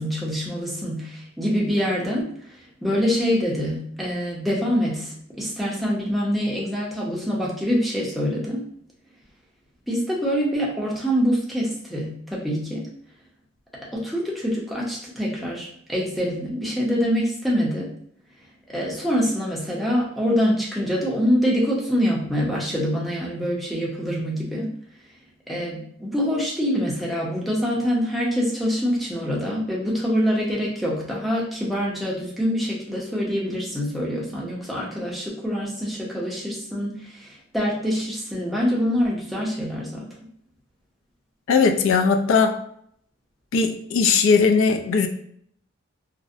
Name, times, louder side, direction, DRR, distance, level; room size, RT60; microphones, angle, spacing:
voice 1, 0.0-2.3 2.8-8.6 9.9-12.9 13.9-17.9 18.7-24.7 25.5-40.1, equal, ahead, -5 dB, 0.5 m, -25 dB
voice 2, 41.5-42.6 43.5-45.1, left 5 dB, 70° left, 6 dB, 0.3 m, -19 dB
2.5 x 2.0 x 2.5 m, 0.67 s
head